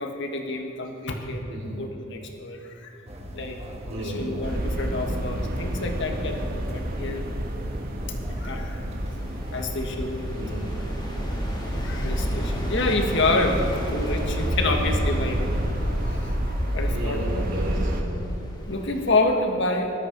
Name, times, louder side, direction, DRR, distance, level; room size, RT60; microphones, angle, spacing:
voice 1, 0.0-3.0 3.3-3.6 4.0-7.3 8.3-8.8 9.5-10.3 11.7-17.4 18.7-19.9, left 2 dB, 65° left, 3 dB, 1.8 m, -28 dB
sound 1, 3.1-9.7, equal, 30° right, 1.6 m, -39 dB
voice 2, 3.9-4.3 10.3-10.7 16.9-18.2, right 1 dB, 70° right, -9 dB, 3.7 m, -32 dB
sound 2, 4.4-18.0, equal, 45° right, 1.5 m, -29 dB
sound 3, 8.9-19.2, equal, 25° left, 2.7 m, -35 dB
20.5 x 12.5 x 5.4 m, 2.9 s
head